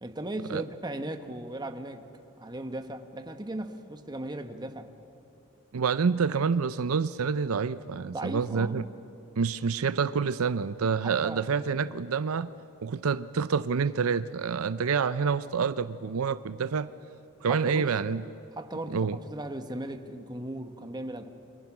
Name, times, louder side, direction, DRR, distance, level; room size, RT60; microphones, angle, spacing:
voice 1, 0.0-2.1 2.4-4.9 8.1-8.8 10.8-11.5 17.5-17.9 18.5-21.3, right 1 dB, 20° right, 7 dB, 1.2 m, -37 dB
voice 2, 5.7-8.9 9.4-12.5 12.8-16.9 17.4-18.2 18.9-19.2, right 5 dB, 75° right, 14 dB, 0.5 m, -27 dB
28.5 x 25.0 x 6.0 m, 2.7 s
head